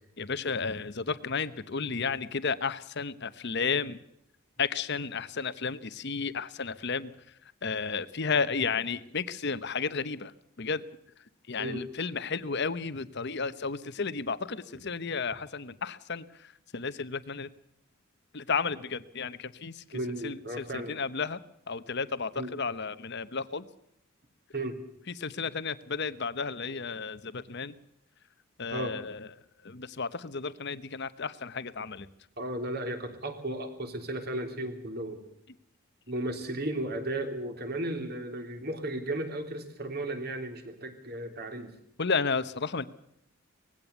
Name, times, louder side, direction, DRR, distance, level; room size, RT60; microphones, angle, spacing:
voice 1, 0.2-4.0 4.6-7.1 7.6-10.3 10.6-10.8 11.5-16.3 16.7-17.5 18.3-19.8 20.2-21.4 21.7-23.7 25.1-27.7 28.6-29.3 29.6-32.1 42.0-42.9, left 5 dB, 50° left, 14 dB, 0.9 m, -32 dB
voice 2, 19.9-21.0 22.4-22.5 24.5-24.8 28.7-29.0 32.4-35.2 36.1-41.7, right 1 dB, 45° right, 5 dB, 3.3 m, -35 dB
19.5 x 16.0 x 8.1 m, 0.76 s
head